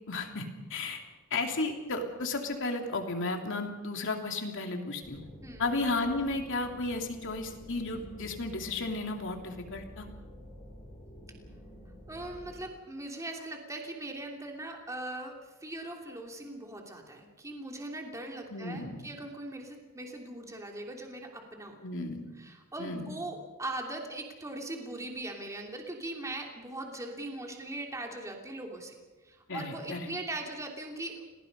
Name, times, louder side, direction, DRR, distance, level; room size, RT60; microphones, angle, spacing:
voice 1, 0.1-1.0 1.3-5.2 5.6-10.1 18.5-19.1 21.8-22.3 22.8-23.2 29.5-30.1, left 2 dB, 60° left, 3 dB, 3.1 m, -34 dB
sound 1, 5.0-12.6, equal, 20° left, 6.0 m, -49 dB
voice 2, 12.1-21.8 22.4-29.0 29.2-31.3, right 2 dB, 15° right, 1 dB, 3.1 m, -40 dB
30.0 x 19.0 x 5.4 m, 1.3 s
head